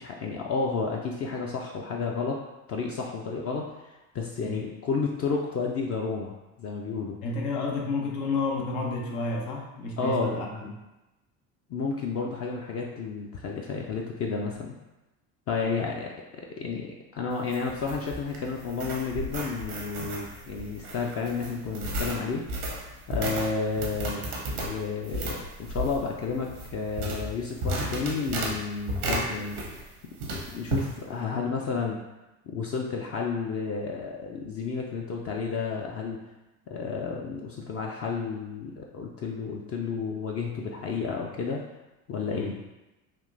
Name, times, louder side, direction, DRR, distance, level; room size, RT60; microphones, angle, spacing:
voice 1, 0.0-2.4 2.7-7.2 10.0-10.4 11.7-14.7 15.5-22.4 23.1-29.8 30.3-32.0 32.5-36.2 36.7-41.6 42.1-42.6, left 5 dB, 35° left, -1 dB, 0.4 m, -31 dB
voice 2, 7.2-10.7 42.3-42.6, left 3 dB, 80° left, 0 dB, 0.7 m, -31 dB
sound 1, 17.3-29.9 30.2-30.9, right 1 dB, 85° right, 0.8 m, -34 dB
3.5 x 2.5 x 2.5 m, 1.0 s
hypercardioid pair, 60°, 44 cm